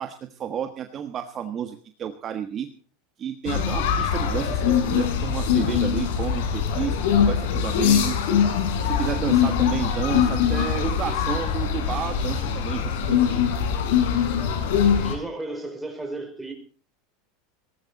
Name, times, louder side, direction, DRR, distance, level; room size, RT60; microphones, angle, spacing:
voice 1, 0.0-2.7 3.2-8.3 8.8-13.4, right 9 dB, 30° right, 1.4 m, -31 dB
sound 1, 3.5-15.1, left 8 dB, 75° left, 4.5 m, -22 dB
voice 2, 14.9-16.5, right 2 dB, 5° right, 5.0 m, -34 dB
18.0 x 15.0 x 4.1 m
supercardioid pair, 135°, 0 cm